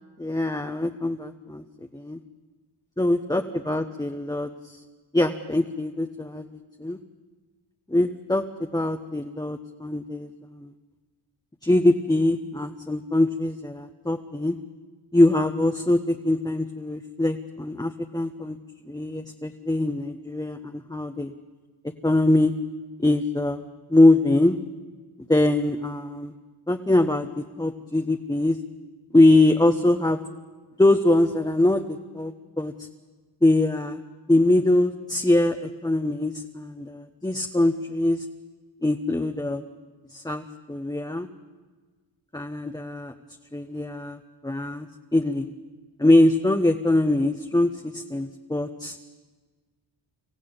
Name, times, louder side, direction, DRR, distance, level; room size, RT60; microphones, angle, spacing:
voice 1, 0.2-1.6 1.9-2.2 3.0-4.5 5.1-6.5 6.8-7.0 7.9-10.7 11.6-14.6 15.1-18.6 18.9-21.3 22.0-22.5 23.0-23.6 23.9-24.6 25.3-26.3 26.7-28.6 29.1-30.2 30.8-32.9 33.4-34.0 34.3-38.3 38.8-39.6 40.1-41.3 42.3-43.1 43.5-44.2 44.4-44.9 45.1-45.5 46.0-49.0, left 1 dB, 10° left, 4 dB, 1.1 m, -23 dB
25.5 x 15.0 x 8.9 m, 1.4 s
cardioid pair, 65°, 49 cm